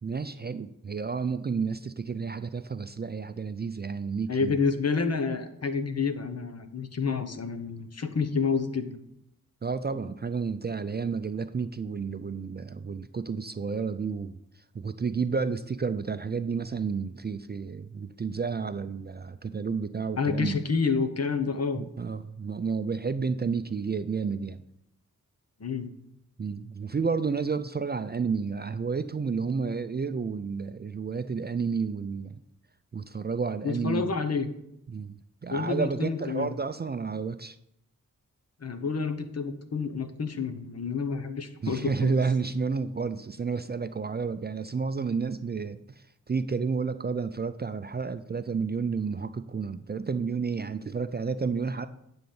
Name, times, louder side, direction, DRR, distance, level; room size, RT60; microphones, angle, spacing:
voice 1, 0.0-4.5 9.6-14.4 14.7-20.6 21.8-24.6 26.4-32.4 32.9-34.1 34.9-35.2 35.4-37.6 41.6-51.9, right 5 dB, 30° right, 11 dB, 0.4 m, -31 dB
voice 2, 4.3-9.0 20.2-21.8 25.6-25.9 33.6-34.5 35.5-36.6 38.6-42.1, left 5 dB, 50° left, 9 dB, 0.9 m, -29 dB
9.3 x 3.9 x 7.0 m, 0.78 s
wide cardioid pair, 70°, 33 cm